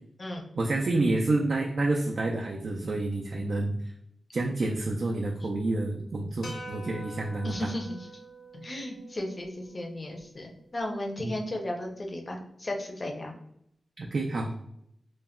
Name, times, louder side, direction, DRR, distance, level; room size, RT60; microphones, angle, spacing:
voice 1, 0.5-3.8 4.3-7.7 11.2-11.3 14.0-14.5, right 2 dB, 55° right, 0 dB, 0.3 m, -28 dB
sound 1, 6.4-10.8, right 1 dB, 80° left, 0.6 m, -46 dB
voice 2, 7.4-8.0 8.5-13.3, left 1 dB, 35° left, 1 dB, 0.5 m, -35 dB
2.2 x 2.1 x 3.5 m, 0.74 s
wide cardioid pair, 120°, 0 cm